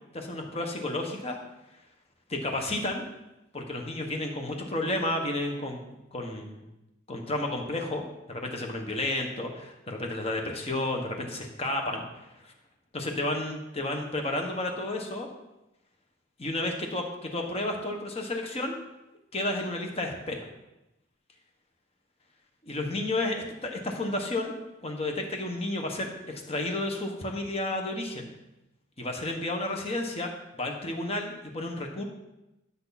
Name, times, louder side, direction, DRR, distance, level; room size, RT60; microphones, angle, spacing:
voice 1, 0.1-1.4 2.3-3.0 3.5-5.8 6.1-6.7 7.1-8.0 8.3-12.1 12.4-12.5 12.9-15.3 16.4-18.8 19.3-20.5 22.6-24.5 24.8-28.3 29.0-30.3 30.6-32.0, left 2 dB, 30° left, 2 dB, 1.5 m, -31 dB
12.5 x 7.0 x 4.2 m, 0.94 s
head